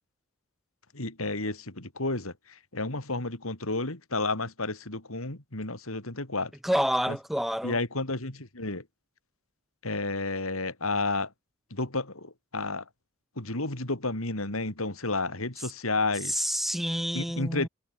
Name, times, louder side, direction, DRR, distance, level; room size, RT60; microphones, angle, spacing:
voice 1, 0.9-6.5 7.1-7.2 7.6-8.8 9.8-11.3 11.7-12.8 13.4-16.4 17.1-17.7, left 2 dB, 85° left, 4.3 m, -31 dB
voice 2, 6.6-7.8 16.3-17.7, equal, ahead, 4.6 m, -28 dB
head